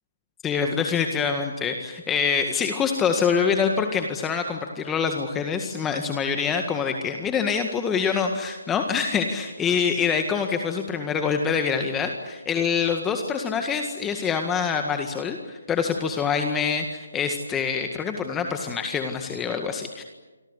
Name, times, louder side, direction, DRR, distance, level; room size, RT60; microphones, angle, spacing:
voice 1, 0.4-20.0, left 6 dB, 10° left, 5 dB, 1.9 m, -25 dB
28.0 x 24.5 x 8.4 m, 1.3 s
figure-of-eight pair, 150°, 0 cm